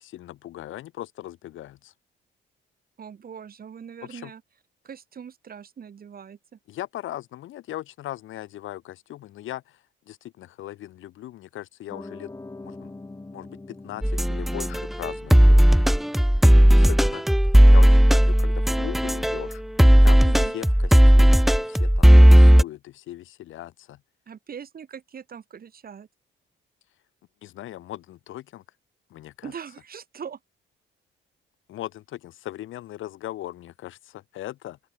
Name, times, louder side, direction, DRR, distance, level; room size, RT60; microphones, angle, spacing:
voice 1, 0.0-1.9 4.0-4.3 6.7-12.3 12.6-12.9 13.3-15.9 16.4-20.2 20.5-20.7 21.1-24.0 27.4-28.6 29.1-29.5 31.7-34.8, left 14 dB, 80° left, 2.2 m, -39 dB
voice 2, 3.0-4.4 4.8-6.6 20.2-20.6 24.3-26.1 29.4-30.4, right 7 dB, 50° right, 2.8 m, -41 dB
Piano, 11.9-18.4, left 2 dB, 15° left, 2.1 m, -45 dB
sound 1, 14.0-19.5 19.8-22.6, equal, ahead, 0.4 m, -15 dB
open air
cardioid pair, 90°, 20 cm